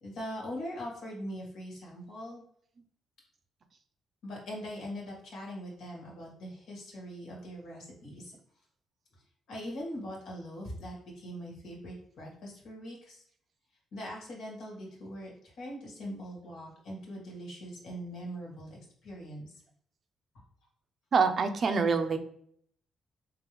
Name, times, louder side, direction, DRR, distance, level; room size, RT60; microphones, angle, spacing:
voice 1, 0.0-2.4 4.2-8.4 9.5-13.2 13.9-19.5, equal, 75° left, -2 dB, 1.5 m, -41 dB
voice 2, 21.1-22.2, right 5 dB, 50° right, 7 dB, 0.5 m, -26 dB
3.9 x 2.7 x 3.1 m, 0.64 s
cardioid pair, 90°, 0 cm